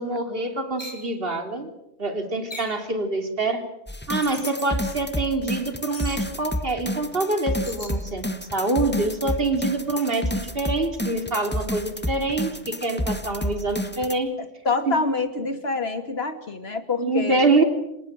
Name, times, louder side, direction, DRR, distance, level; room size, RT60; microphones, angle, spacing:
voice 1, 0.0-1.7 2.0-3.6 4.1-14.3 14.9-15.0 17.0-17.6, right 2 dB, 55° right, 6 dB, 3.4 m, -25 dB
sound 1, 0.8-1.0 2.5-2.8 4.2-4.7 5.9-6.2 7.6-8.0, equal, 40° left, 5.9 m, -38 dB
sound 2, 3.9-14.1, equal, 10° left, 1.4 m, -30 dB
voice 2, 14.6-17.4, left 4 dB, 65° left, 9 dB, 2.6 m, -26 dB
27.0 x 19.5 x 9.0 m, 0.85 s
omnidirectional pair, 1.2 m